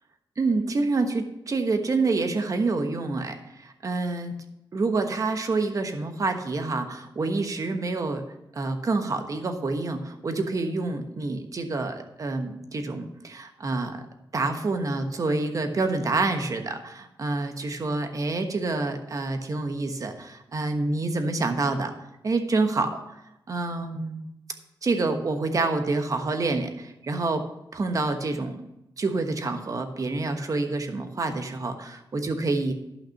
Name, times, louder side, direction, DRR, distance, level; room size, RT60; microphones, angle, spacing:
voice 1, 0.4-4.4 4.7-8.2 8.5-14.1 14.3-21.9 22.2-23.2 23.5-24.2 24.8-27.4 27.7-28.6 29.0-32.7, right 3 dB, 45° right, 6 dB, 1.2 m, -27 dB
12.0 x 5.8 x 5.8 m, 0.90 s
wide cardioid pair, 120°, 8 cm